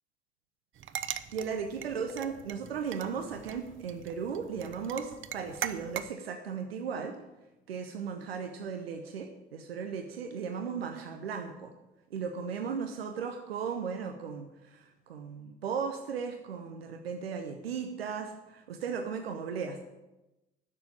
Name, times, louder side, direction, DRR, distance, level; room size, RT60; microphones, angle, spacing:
sound 1, 0.8-6.1, right 10 dB, 40° right, 0.8 m, -41 dB
voice 1, 1.3-7.2 7.7-11.7 12.1-19.8, right 6 dB, 85° right, 5 dB, 1.0 m, -36 dB
10.0 x 7.0 x 8.9 m, 1.0 s
figure-of-eight pair, 55°, 29 cm